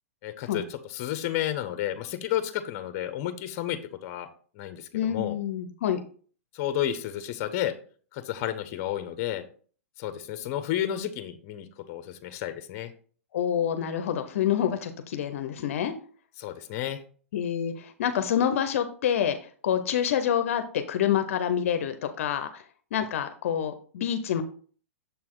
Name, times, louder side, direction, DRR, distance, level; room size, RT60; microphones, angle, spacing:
voice 1, 0.2-4.3 4.5-5.4 6.5-7.7 8.1-9.4 10.0-12.9 16.4-17.0, left 11 dB, 40° left, 11 dB, 0.9 m, -31 dB
voice 2, 4.9-6.0 13.3-15.9 17.3-19.4 19.6-22.6 22.9-24.4, left 9 dB, 65° left, 8 dB, 0.7 m, -27 dB
6.9 x 4.3 x 3.7 m, 0.43 s
hypercardioid pair, 140°, 8 cm